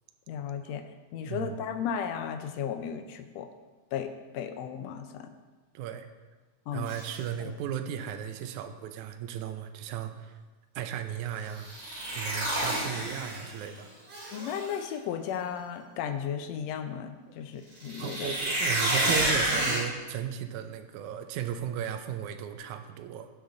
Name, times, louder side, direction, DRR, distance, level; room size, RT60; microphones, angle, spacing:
voice 1, 0.3-0.8 1.1-3.5 3.9-5.3 6.7-6.9 7.4-7.5 14.3-18.4, left 8 dB, 85° left, 7 dB, 1.5 m, -35 dB
voice 2, 5.7-6.1 6.7-10.4 10.8-11.8 12.1-13.9 18.0-23.3, right 9 dB, 80° right, 8 dB, 2.0 m, -35 dB
sound 1, 6.9-7.2 11.6-13.6 14.1-14.7 17.8-19.8, right 1 dB, 60° right, 3.4 m, -29 dB
16.5 x 6.2 x 3.9 m, 1.3 s
omnidirectional pair, 3.6 m